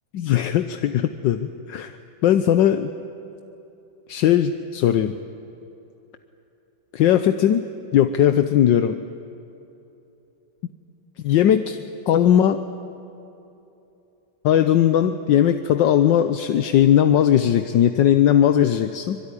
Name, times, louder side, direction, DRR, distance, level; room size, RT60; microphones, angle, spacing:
voice 1, 0.1-1.9 2.2-2.9 4.1-5.2 6.9-7.7 7.9-9.0 11.2-11.8 12.1-12.6 14.4-19.2, left 10 dB, 75° left, 9 dB, 1.5 m, -18 dB
25.0 x 23.5 x 9.9 m, 2.9 s
omnidirectional pair, 2.0 m